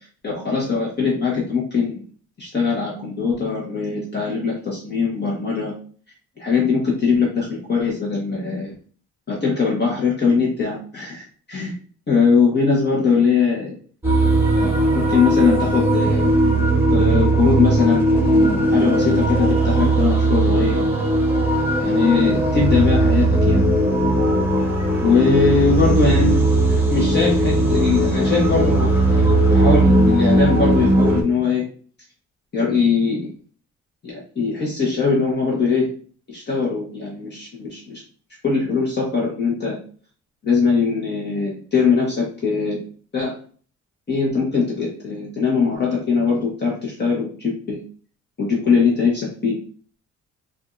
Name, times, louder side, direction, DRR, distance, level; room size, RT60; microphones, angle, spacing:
voice 1, 0.2-2.0 2.4-5.7 6.4-8.7 9.3-11.7 12.1-13.7 14.5-16.3 16.9-20.8 21.8-23.6 25.0-31.6 32.5-33.3 34.0-35.9 36.3-38.0 38.4-39.8 40.4-42.8 43.1-43.4 44.1-47.8 48.4-49.6, left 5 dB, 35° left, -4 dB, 1.2 m, -21 dB
sound 1, 14.0-31.2, right 2 dB, 5° right, 1.1 m, -18 dB
5.0 x 2.5 x 2.5 m, 0.43 s
cardioid pair, 110°, 29 cm